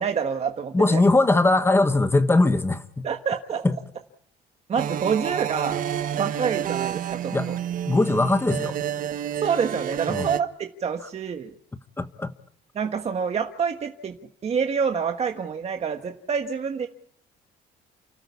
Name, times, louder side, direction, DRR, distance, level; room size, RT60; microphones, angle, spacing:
voice 1, 0.0-1.0 3.0-3.6 4.7-5.8 6.1-7.5 9.4-11.5 12.7-14.2 14.4-16.9, right 6 dB, 40° right, 1.5 m, -27 dB
voice 2, 0.7-3.1 3.6-3.8 7.3-7.5 7.9-8.8 10.1-10.3 12.0-12.3, left 2 dB, 15° left, 1.2 m, -20 dB
sound 1, 4.7-10.4, right 10 dB, 55° right, 1.1 m, -29 dB
29.5 x 13.0 x 8.3 m
cardioid pair, 110°, 17 cm